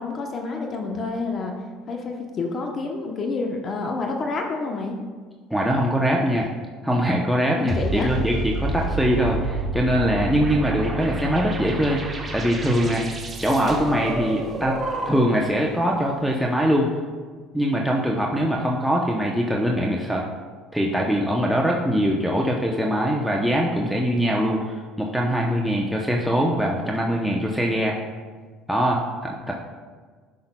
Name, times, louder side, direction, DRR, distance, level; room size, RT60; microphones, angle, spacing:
voice 1, 0.0-1.6 1.9-4.9 7.5-8.1, left 3 dB, 40° left, 2 dB, 0.8 m, -28 dB
voice 2, 5.5-6.5 6.8-12.0 12.3-13.0 13.4-14.8 15.1-16.9 17.5-20.2 20.7-27.9 28.7-29.5, equal, ahead, -2 dB, 0.7 m, -22 dB
sound 1, 7.7-15.5, right 2 dB, 25° right, 1.0 m, -29 dB
10.0 x 5.5 x 2.2 m, 1.5 s
supercardioid pair, 100°, 0 cm